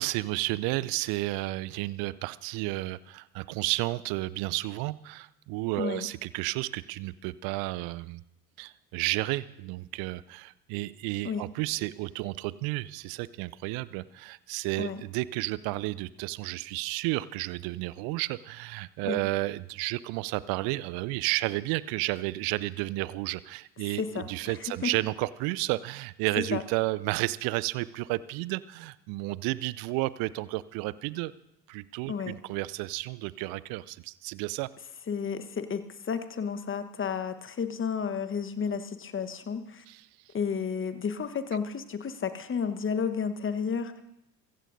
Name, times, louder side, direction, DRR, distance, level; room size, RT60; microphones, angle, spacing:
voice 1, 0.0-8.2 8.6-31.3 31.7-34.7 39.9-40.0, right 19 dB, 45° right, 19 dB, 0.6 m, -32 dB
voice 2, 5.8-6.1 11.2-11.4 14.8-15.0 19.1-19.2 23.9-24.9 26.4-26.6 32.1-32.4 35.1-39.8 40.3-44.0, left 6 dB, 25° left, 10 dB, 1.2 m, -32 dB
24.5 x 15.5 x 2.7 m, 0.84 s
figure-of-eight pair, 60°, 50 cm